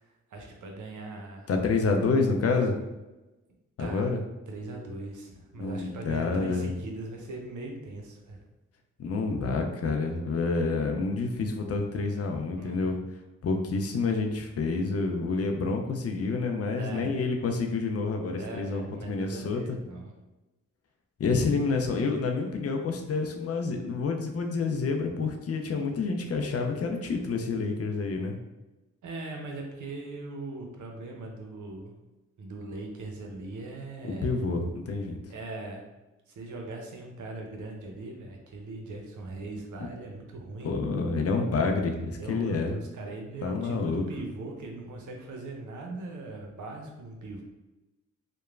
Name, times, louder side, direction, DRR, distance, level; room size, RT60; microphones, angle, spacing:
voice 1, 0.3-1.5 3.8-4.1 4.5-8.4 12.6-13.1 16.7-17.2 18.4-20.1 21.4-21.5 29.0-31.9 32.4-34.3 35.3-35.8 36.3-40.7 42.2-47.4, right 2 dB, 60° right, 1 dB, 0.6 m, -40 dB
voice 2, 1.5-2.7 3.8-4.2 5.6-6.7 9.0-13.0 13.4-19.8 21.2-28.4 34.2-35.2 40.6-42.8 43.4-44.0, left 4 dB, 45° left, 3 dB, 0.5 m, -28 dB
2.9 x 2.1 x 2.4 m, 1.0 s
supercardioid pair, 40°, 34 cm